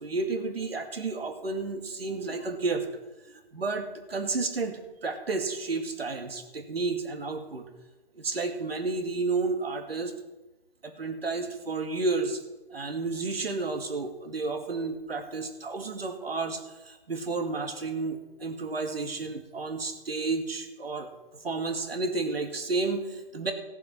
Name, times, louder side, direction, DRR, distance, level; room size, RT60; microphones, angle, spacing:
voice 1, 0.0-2.8 3.5-7.7 8.1-10.1 10.8-12.4 12.7-21.1 21.4-23.5, right 3 dB, 85° right, 6 dB, 2.3 m, -31 dB
15.5 x 7.2 x 5.9 m, 1.1 s
hypercardioid pair, 170°, 29 cm